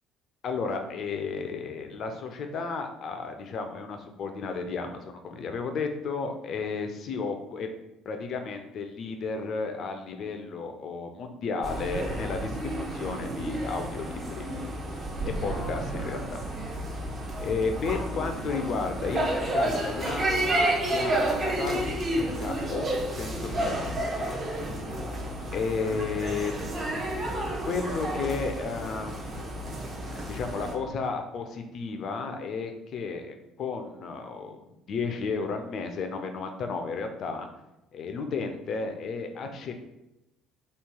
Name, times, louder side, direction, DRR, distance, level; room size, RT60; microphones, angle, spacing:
voice 1, 0.4-7.7 8.1-14.5 15.2-16.5 17.4-24.3 25.5-26.9 27.7-29.4 30.1-34.6 34.9-37.5 37.9-39.7, left 4 dB, 50° left, 6 dB, 0.4 m, -33 dB
sound 1, 11.6-30.7, right 1 dB, 35° right, 0.7 m, -31 dB
3.1 x 2.4 x 3.6 m, 0.91 s
figure-of-eight pair, 55°, 0 cm